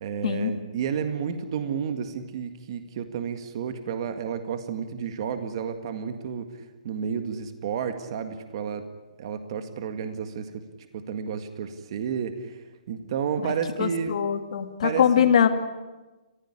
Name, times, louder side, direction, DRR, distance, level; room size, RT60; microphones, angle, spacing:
voice 1, 0.0-6.5 6.8-8.8 9.2-10.5 10.9-12.6 12.9-14.2 14.8-15.3, right 7 dB, 40° right, 8 dB, 1.9 m, -31 dB
voice 2, 13.8-15.5, left 8 dB, 50° left, 7 dB, 2.4 m, -22 dB
30.0 x 15.5 x 10.0 m, 1.2 s
hypercardioid pair, 170°, 4 cm